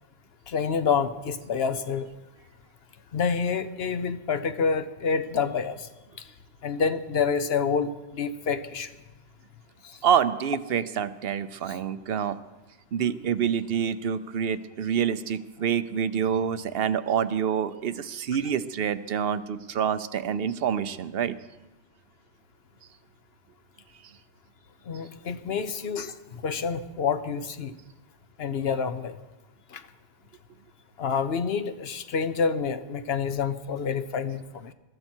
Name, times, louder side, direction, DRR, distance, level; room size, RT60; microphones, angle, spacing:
voice 1, 0.5-2.1 3.1-5.9 6.2-6.3 6.6-8.9 9.8-10.0 11.6-11.8 24.9-27.7 28.4-29.2 29.7-29.8 31.0-34.7, left 6 dB, 60° left, 11 dB, 1.1 m, -28 dB
voice 2, 10.0-12.4 12.9-21.4, right 8 dB, 60° right, 14 dB, 0.8 m, -27 dB
21.0 x 14.0 x 4.5 m, 1.1 s
omnidirectional pair, 1.2 m